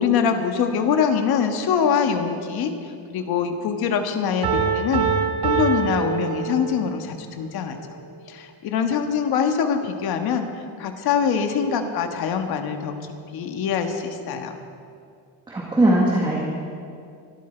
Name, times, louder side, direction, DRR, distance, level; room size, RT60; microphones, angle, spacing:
voice 1, 0.0-5.1 5.4-7.8 8.3-13.0 13.3-14.5, left 7 dB, 65° left, 5 dB, 1.6 m, -24 dB
Piano, 4.4-7.0, right 6 dB, 70° right, 2.9 m, -24 dB
voice 2, 15.5-16.4, right 1 dB, 10° right, -3 dB, 1.8 m, -19 dB
24.0 x 13.0 x 4.5 m, 2.4 s
cardioid pair, 170°, 40 cm